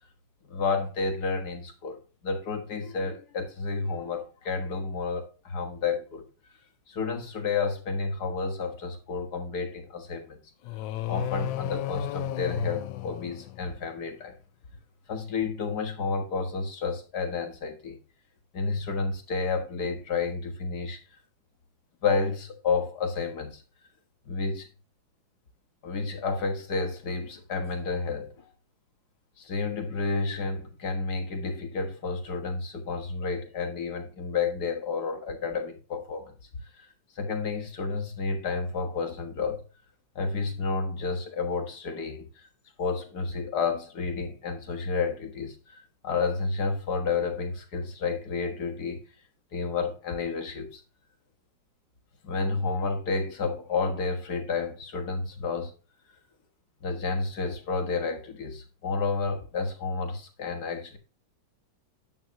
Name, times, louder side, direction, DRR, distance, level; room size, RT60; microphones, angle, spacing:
voice 1, 0.5-6.2 6.9-10.4 11.1-14.4 15.1-18.0 18.5-21.0 22.0-23.6 24.3-24.7 25.8-28.5 29.4-36.3 36.7-36.9 37.2-39.6 40.2-42.5 42.8-49.0 49.5-50.8 52.2-55.7 56.8-61.0, left 4 dB, 55° left, 2.0 m, -30 dB
sound 1, 10.6-14.0, left 15 dB, 75° left, 1.4 m, -34 dB
10.5 x 6.8 x 2.9 m
omnidirectional pair, 2.1 m